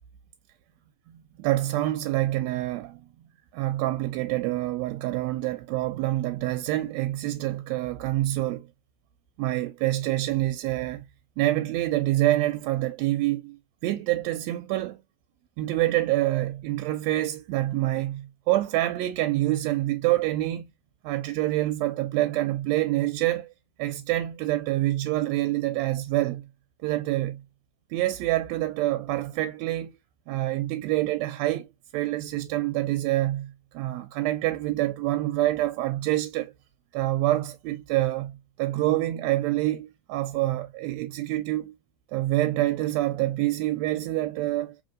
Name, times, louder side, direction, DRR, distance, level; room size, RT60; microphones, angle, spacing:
voice 1, 1.4-3.0 3.5-8.7 9.4-11.0 11.4-13.6 13.8-15.0 15.6-20.7 21.0-23.5 23.8-26.5 26.8-27.4 27.9-30.0 30.3-31.7 31.9-36.5 36.9-41.7 42.1-44.8, right 16 dB, 80° right, 1.7 m, -26 dB
4.4 x 3.2 x 2.4 m
omnidirectional pair, 3.3 m